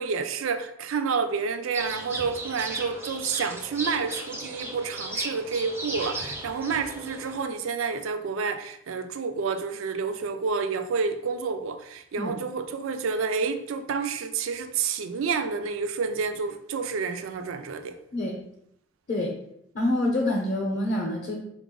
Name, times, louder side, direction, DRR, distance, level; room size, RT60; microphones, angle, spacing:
voice 1, 0.0-18.0, right 5 dB, 75° right, 0.4 m, -29 dB
sound 1, 1.7-7.4, right 2 dB, 10° right, 0.4 m, -35 dB
voice 2, 19.7-21.4, left 1 dB, 40° left, 0.6 m, -26 dB
4.0 x 2.5 x 3.6 m
head